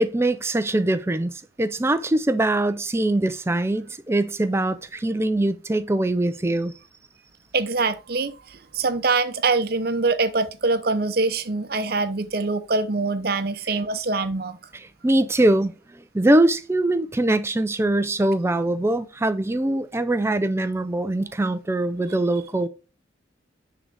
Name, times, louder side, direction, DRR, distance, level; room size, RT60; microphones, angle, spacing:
voice 1, 0.0-6.7 14.7-22.7, right 1 dB, 15° right, 0.4 m, -22 dB
voice 2, 7.5-14.6, right 3 dB, 50° right, 0.7 m, -24 dB
9.9 x 3.9 x 3.3 m
head